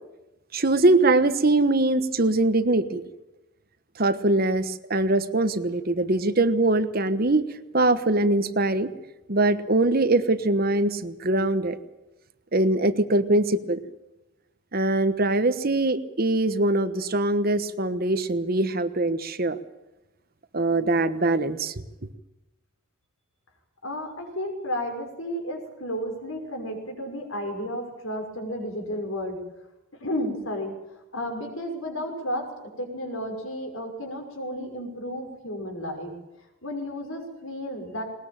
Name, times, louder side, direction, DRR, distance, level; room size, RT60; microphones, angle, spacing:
voice 1, 0.5-3.0 4.0-7.4 7.7-8.9 9.3-11.8 12.5-13.8 14.7-19.6 20.5-21.7, right 2 dB, 45° right, 12 dB, 1.2 m, -22 dB
voice 2, 23.8-29.4 29.9-30.8 31.1-36.1 36.6-38.0, equal, 80° left, 3 dB, 6.0 m, -32 dB
20.5 x 20.0 x 8.9 m, 0.98 s
head